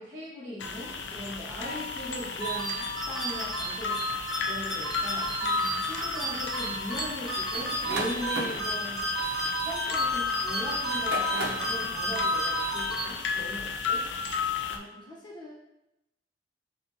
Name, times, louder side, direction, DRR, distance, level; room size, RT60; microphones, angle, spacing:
voice 1, 0.0-4.0 4.5-5.3 5.8-9.0 9.5-14.0, equal, 20° right, -15 dB, 1.5 m, -39 dB
sound 1, 0.6-14.8, left 5 dB, 70° left, 0.4 m, -33 dB
sound 2, 2.4-13.6, right 2 dB, ahead, 0.9 m, -33 dB
voice 2, 5.4-5.9 11.5-12.0 13.4-13.6 14.7-15.5, equal, 25° left, -4 dB, 1.0 m, -48 dB
sound 3, 7.5-10.3 10.9-11.8, right 1 dB, 65° right, 0.8 m, -35 dB
7.4 x 2.5 x 2.8 m, 0.88 s
head